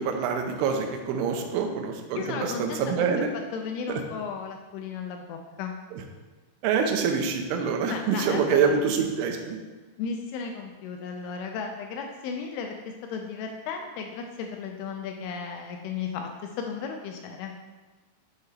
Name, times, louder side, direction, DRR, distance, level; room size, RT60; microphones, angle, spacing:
voice 1, 0.0-3.3 3.9-4.0 6.6-9.6, right 6 dB, 80° right, 4 dB, 2.6 m, -26 dB
voice 2, 2.2-3.1 3.5-5.7 7.9-8.8 10.0-17.5, left 5 dB, 85° left, 3 dB, 2.3 m, -35 dB
7.0 x 4.4 x 3.3 m, 1.3 s
omnidirectional pair, 4.8 m